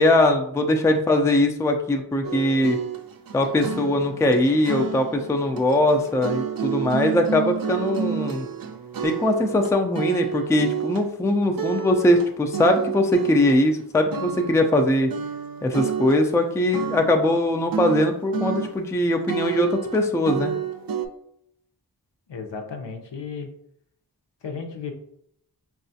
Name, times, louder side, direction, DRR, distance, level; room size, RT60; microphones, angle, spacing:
voice 1, 0.0-2.8 3.3-8.5 9.0-15.1 15.6-20.5, left 1 dB, 5° left, 5 dB, 0.3 m, -21 dB
sound 1, 2.2-13.8 14.1-14.9 15.1-17.4 17.7-19.0 19.3-21.1, right 8 dB, 55° right, 0.5 m, -30 dB
voice 2, 22.3-23.5 24.4-24.9, left 5 dB, 75° left, 3 dB, 0.7 m, -34 dB
4.1 x 2.3 x 2.7 m, 0.71 s
wide cardioid pair, 40°, 44 cm